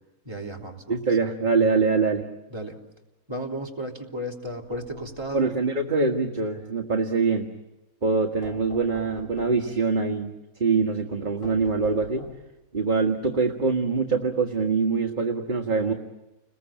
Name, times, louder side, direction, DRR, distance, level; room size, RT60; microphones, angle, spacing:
voice 1, 0.3-1.0 2.5-2.8 3.3-5.5, equal, 15° right, 0 dB, 3.5 m, -34 dB
voice 2, 0.9-2.3 5.3-7.5 8.0-10.3 10.6-12.3 12.7-15.9, right 4 dB, 30° right, 2 dB, 1.8 m, -24 dB
sound 1, 4.4-5.4 8.4-9.7 11.4-12.6, left 2 dB, 70° left, 3.4 m, -43 dB
30.0 x 21.5 x 9.0 m, 1.0 s
omnidirectional pair, 1.7 m